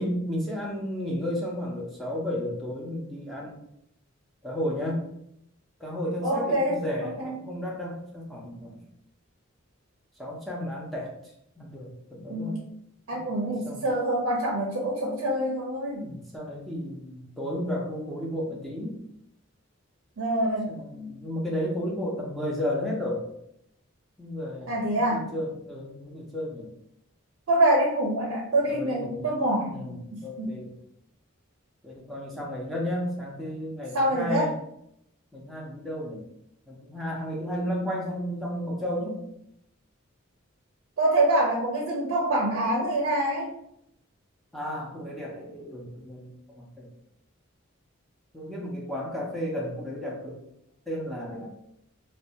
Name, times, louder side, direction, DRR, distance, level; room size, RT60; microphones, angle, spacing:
voice 1, 0.0-3.6 4.4-5.1 5.8-8.8 10.2-11.1 11.6-12.6 13.1-13.8 15.0-15.2 16.0-19.0 20.7-23.2 24.2-26.7 28.4-29.4 29.7-30.7 31.8-34.5 35.3-36.2 36.7-39.2 44.5-46.9 48.3-50.4 50.9-51.5, equal, ahead, -4 dB, 0.5 m, -33 dB
voice 2, 6.2-7.4 12.3-12.6 13.1-16.0 20.2-20.8 24.7-25.3 27.5-30.5 33.9-34.5 41.0-43.5, right 1 dB, 75° right, -2 dB, 0.4 m, -26 dB
2.5 x 2.1 x 2.8 m, 0.76 s
head